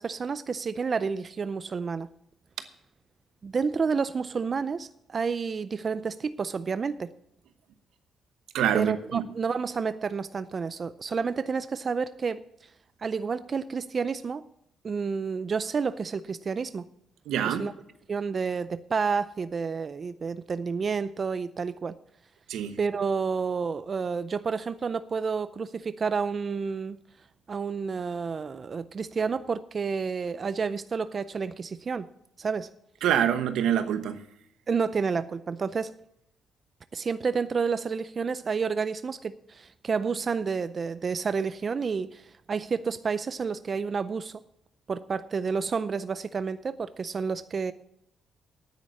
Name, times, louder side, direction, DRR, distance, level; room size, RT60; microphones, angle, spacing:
voice 1, 0.0-2.1 3.4-7.1 8.7-12.4 13.0-14.4 14.8-16.9 17.4-17.7 18.1-21.9 22.8-27.0 27.5-32.1 32.4-32.7 34.7-35.9 36.9-44.4 44.9-47.7, right 5 dB, 40° right, 13 dB, 0.5 m, -30 dB
voice 2, 8.5-9.2 17.3-17.7 22.5-22.8 33.0-34.2, right 9 dB, 80° right, 10 dB, 1.0 m, -26 dB
9.6 x 9.2 x 7.6 m, 0.80 s
cardioid pair, 90°, 0 cm